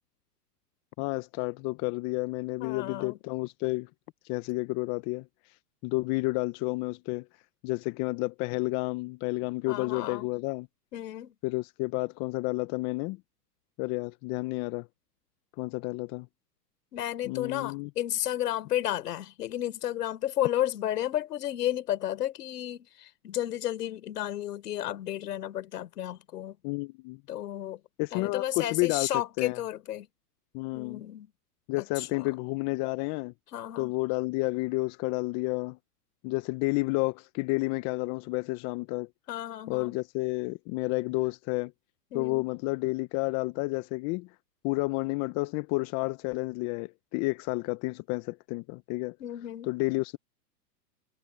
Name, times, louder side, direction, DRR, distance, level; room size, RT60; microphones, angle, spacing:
voice 1, 1.0-3.9 4.3-5.2 5.8-7.2 7.6-10.7 11.4-13.2 13.8-14.9 15.6-16.3 17.3-17.9 26.6-27.2 28.0-29.1 29.4-29.6 30.5-31.0 31.7-33.3 33.8-35.8 36.2-39.1 39.7-41.7 42.1-44.3 44.6-49.1 49.7-50.2, left 24 dB, 35° left, 0.9 m, -30 dB
voice 2, 2.6-3.2 9.7-10.3 10.9-11.3 16.9-26.6 27.3-27.8 28.1-30.1 30.7-31.3 31.8-32.3 33.5-33.9 39.3-40.0 42.1-42.4 49.2-49.7, left 12 dB, 70° left, 4.2 m, -32 dB
hypercardioid pair, 125°, 48 cm